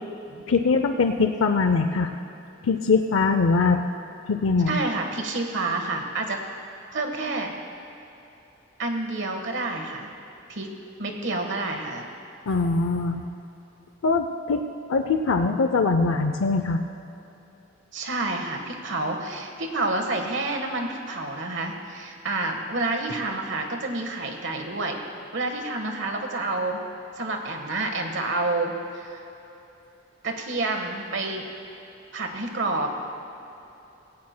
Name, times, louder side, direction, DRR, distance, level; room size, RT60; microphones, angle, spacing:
voice 1, 0.5-2.1 2.6-3.8 4.3-4.8 12.5-13.2 14.0-14.6 14.9-16.8, left 4 dB, 80° left, 7 dB, 0.5 m, -22 dB
voice 2, 4.7-6.4 6.9-7.5 8.8-10.1 10.5-10.7 11.0-12.0 17.9-25.0 25.3-26.8 27.2-29.2 30.2-31.4 32.1-32.9, right 2 dB, 65° right, 3 dB, 1.4 m, -29 dB
17.0 x 16.0 x 2.2 m, 3.0 s
head